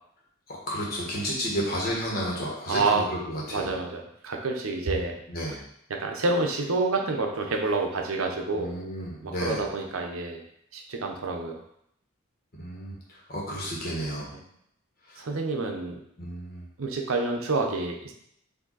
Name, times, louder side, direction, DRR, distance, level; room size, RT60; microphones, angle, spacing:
voice 1, 0.5-3.7 5.3-5.6 8.5-9.6 12.6-14.3 15.1-15.3 16.2-16.6, equal, 45° left, -4 dB, 1.3 m, -32 dB
voice 2, 2.7-3.0 3.5-5.1 5.9-8.7 9.2-10.4 10.7-11.6 15.2-16.0 16.8-18.1, right 3 dB, 80° right, 2 dB, 0.7 m, -28 dB
4.9 x 2.7 x 4.0 m, 0.73 s
head